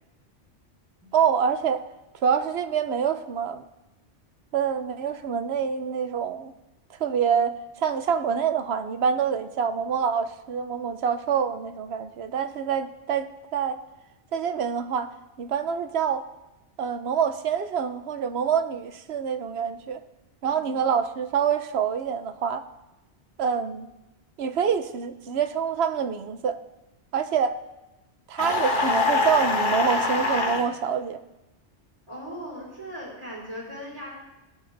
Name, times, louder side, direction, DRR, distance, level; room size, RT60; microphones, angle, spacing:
voice 1, 1.1-1.9 2.2-3.6 4.5-6.5 7.0-13.8 14.3-15.1 15.4-16.2 16.8-20.0 20.4-22.6 23.4-23.9 24.4-26.6 27.1-27.6 28.3-31.2, right 7 dB, 65° right, 10 dB, 1.0 m, -26 dB
voice 2, 20.5-20.8 32.1-34.1, equal, 30° right, -6 dB, 3.8 m, -39 dB
sound 1, 28.4-30.6, left 3 dB, 45° left, 1.3 m, -24 dB
18.5 x 9.5 x 4.0 m, 0.99 s
omnidirectional pair, 1.2 m